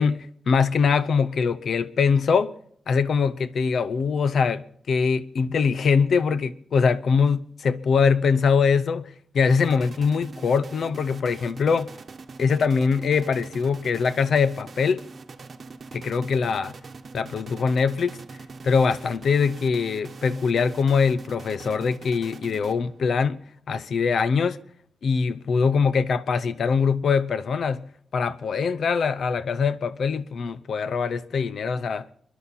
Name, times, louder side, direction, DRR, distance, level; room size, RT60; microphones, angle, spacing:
voice 1, 0.0-2.5 2.9-11.9 12.4-15.0 15.9-16.7 17.1-18.2 18.6-24.6 25.0-27.9 28.1-32.1, left 5 dB, 70° left, 0.7 m, -23 dB
sound 1, 9.5-23.1, right 4 dB, 45° right, 1.0 m, -43 dB
30.0 x 11.0 x 4.1 m
wide cardioid pair, 170°, 0 cm